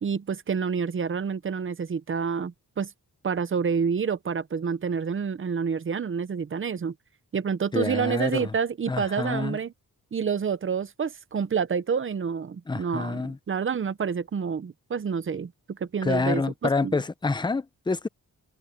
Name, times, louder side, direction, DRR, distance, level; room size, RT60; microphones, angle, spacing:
voice 1, 0.0-2.9 3.2-6.9 7.3-9.7 10.1-17.0, right 6 dB, 35° right, 0.7 m, -28 dB
voice 2, 7.7-8.5 8.9-9.6 12.7-13.4 16.0-18.1, left 3 dB, 10° left, 0.6 m, -27 dB
wide cardioid pair, 175°, 36 cm